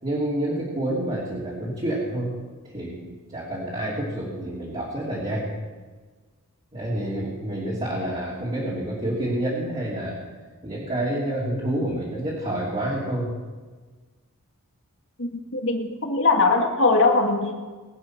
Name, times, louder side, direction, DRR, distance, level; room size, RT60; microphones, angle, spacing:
voice 1, 0.0-2.3 2.6-5.4 6.7-10.2 10.6-13.3, right 1 dB, 30° right, -6 dB, 3.1 m, -28 dB
voice 2, 15.2-17.5, left 3 dB, 60° left, 3 dB, 2.0 m, -21 dB
21.0 x 8.9 x 6.0 m, 1.4 s
head